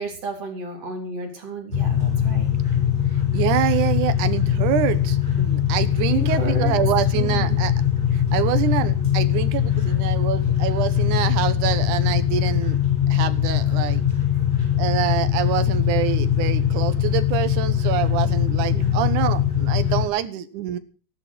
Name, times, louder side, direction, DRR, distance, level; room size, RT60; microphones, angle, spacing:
voice 1, 0.0-2.6 6.1-6.8 7.1-7.6 18.7-18.9, right 3 dB, 40° right, 2 dB, 4.4 m, -32 dB
sound 1, 1.7-20.1, left 9 dB, 10° left, 5.4 m, -21 dB
voice 2, 3.3-7.7 8.1-12.8 13.1-14.0 14.8-20.8, right 11 dB, 65° right, 12 dB, 2.3 m, -26 dB
14.5 x 11.5 x 6.1 m, 0.39 s
omnidirectional pair, 4.2 m